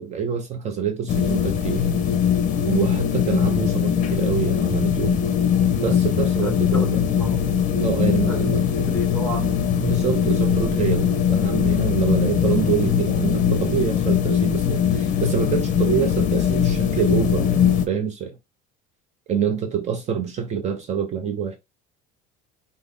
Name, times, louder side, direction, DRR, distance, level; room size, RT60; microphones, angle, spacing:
voice 1, 0.0-1.9 2.7-5.2 5.8-7.0 7.8-8.7 9.8-18.4 19.3-21.6, right 8 dB, 35° right, 0.6 m, -26 dB
sound 1, 1.1-17.9, left 8 dB, 40° left, 0.7 m, -21 dB
voice 2, 6.4-7.5 8.2-8.4 8.8-9.6, left 1 dB, 5° left, 1.0 m, -32 dB
5.5 x 2.0 x 3.7 m
cardioid pair, 145°, 21 cm